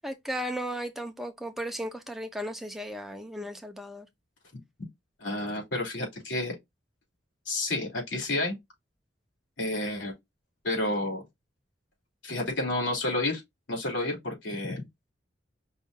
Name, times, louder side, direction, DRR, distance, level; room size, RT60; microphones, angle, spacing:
voice 1, 0.0-4.1, equal, ahead, 0.7 m, -35 dB
voice 2, 5.2-6.5 7.4-8.5 9.6-10.1 10.6-11.2 12.2-13.4 13.7-14.8, left 2 dB, 75° left, 3.1 m, -30 dB
5.4 x 2.5 x 3.7 m
head